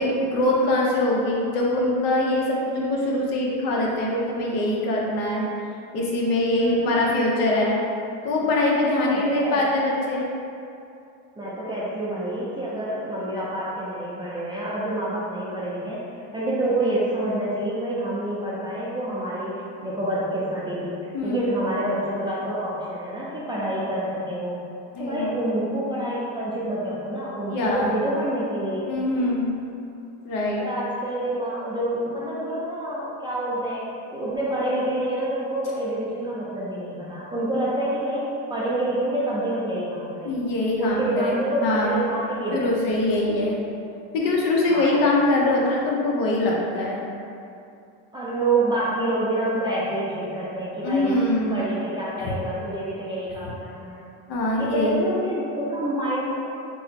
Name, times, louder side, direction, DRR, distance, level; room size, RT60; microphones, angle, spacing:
voice 1, 0.0-5.4 5.9-7.8 8.2-10.3 21.1-21.5 24.9-25.3 27.5-27.9 28.9-29.5 30.2-30.6 40.2-42.0 42.5-43.6 44.1-47.0 50.8-51.6 52.2-52.3 54.3-55.0, left 2 dB, 65° left, -3 dB, 0.9 m, -23 dB
voice 2, 6.6-7.1 9.1-9.6 11.4-16.0 16.3-24.6 25.0-28.9 30.6-33.9 34.1-40.5 40.8-42.7 44.7-45.0 48.1-51.2 51.5-54.0 54.6-56.4, right 1 dB, 15° right, -8 dB, 0.5 m, -27 dB
3.7 x 2.1 x 4.2 m, 2.6 s
cardioid pair, 120°, 36 cm